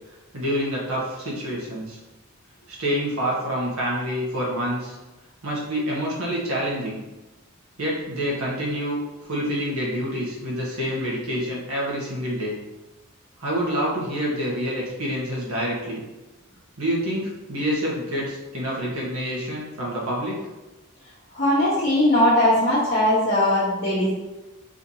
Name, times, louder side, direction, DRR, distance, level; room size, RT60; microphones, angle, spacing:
voice 1, 0.3-2.0 2.7-4.9 5.4-7.0 7.8-9.0 9.3-12.6 13.4-16.0 16.8-20.4, equal, 85° right, -4 dB, 1.4 m, -27 dB
voice 2, 21.3-24.1, left 1 dB, 40° left, -9 dB, 1.1 m, -19 dB
4.9 x 3.2 x 2.8 m, 1.1 s
head